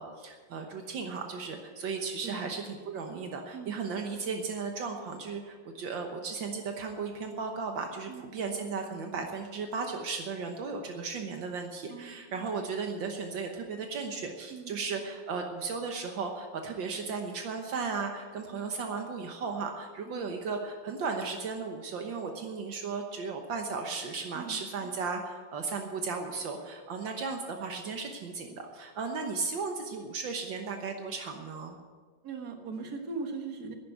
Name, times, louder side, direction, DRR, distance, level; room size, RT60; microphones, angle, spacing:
voice 1, 0.0-31.8, right 4 dB, 75° right, 3 dB, 1.9 m, -35 dB
voice 2, 11.9-12.2 14.5-14.8 18.5-18.7 20.0-20.3 24.3-24.6 32.2-33.7, right 4 dB, 55° right, 4 dB, 2.0 m, -40 dB
11.0 x 10.0 x 8.3 m, 1.4 s
omnidirectional pair, 2.1 m